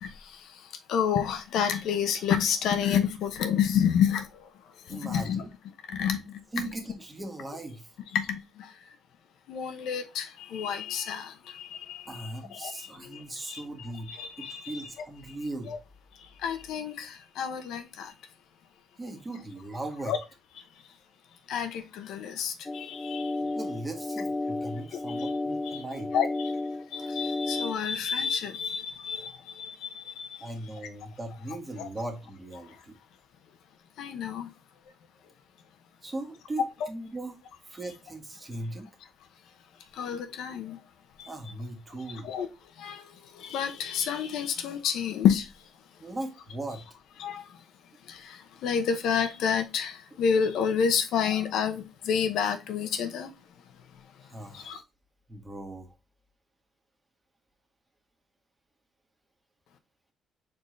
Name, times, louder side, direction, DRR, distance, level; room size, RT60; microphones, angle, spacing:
voice 1, 0.0-4.5 4.9-5.4 5.9-6.4 8.1-8.7 9.5-14.8 15.7-15.8 16.4-18.1 20.1-20.2 21.5-23.3 25.2-25.3 25.7-25.8 26.1-26.5 26.9-30.4 31.8-31.9 34.0-34.5 39.9-40.8 41.2-41.3 42.2-42.5 42.8-45.5 47.2-47.6 48.1-53.3 54.5-54.8, left 7 dB, 85° left, 0.8 m, -29 dB
voice 2, 4.9-5.5 6.5-7.9 12.1-14.1 14.4-15.7 19.0-20.1 23.4-26.1 30.4-33.0 36.0-37.4 37.6-38.9 41.2-42.3 46.0-46.8 54.2-54.8 55.3-55.9, right 2 dB, 20° right, 1.6 m, -38 dB
sound 1, 22.7-27.7, left 2 dB, 25° left, 0.4 m, -33 dB
4.4 x 3.7 x 3.1 m
cardioid pair, 90°, 0 cm